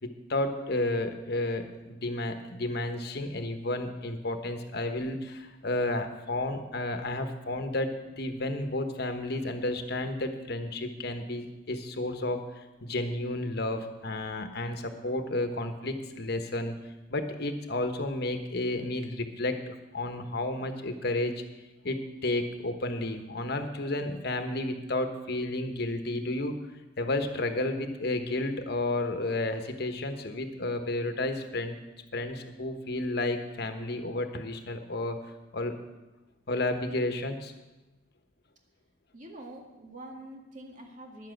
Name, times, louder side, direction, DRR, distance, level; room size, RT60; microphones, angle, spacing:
voice 1, 0.0-12.4 12.8-16.8 17.1-21.4 21.8-26.6 27.0-31.8 32.1-35.2 35.5-35.7 36.5-37.5, left 2 dB, 60° left, 7 dB, 1.2 m, -32 dB
voice 2, 39.1-41.3, right 1 dB, 45° right, 1 dB, 2.0 m, -45 dB
11.0 x 7.6 x 7.7 m, 1.1 s
head